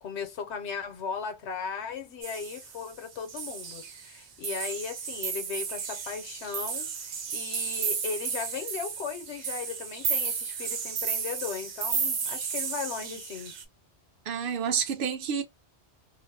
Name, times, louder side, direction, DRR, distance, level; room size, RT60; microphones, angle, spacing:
voice 1, 0.0-13.5, left 6 dB, 80° left, 1.0 m, -37 dB
sound 1, 2.2-2.9 3.3-4.2 4.4-13.6, right 6 dB, 90° right, 1.0 m, -33 dB
voice 2, 14.3-15.4, right 7 dB, 60° right, 0.8 m, -29 dB
2.5 x 2.0 x 2.6 m
omnidirectional pair, 1.1 m